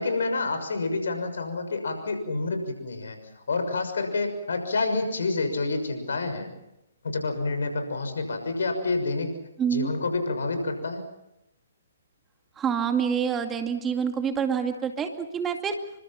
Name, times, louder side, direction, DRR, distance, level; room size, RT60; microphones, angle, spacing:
voice 1, 0.0-6.5 7.0-9.3 9.7-11.0, left 3 dB, 70° left, 7 dB, 6.4 m, -28 dB
voice 2, 9.6-9.9 12.6-15.7, right 7 dB, 15° right, 5 dB, 2.3 m, -27 dB
29.0 x 24.5 x 5.9 m, 0.87 s
figure-of-eight pair, 130°, 0 cm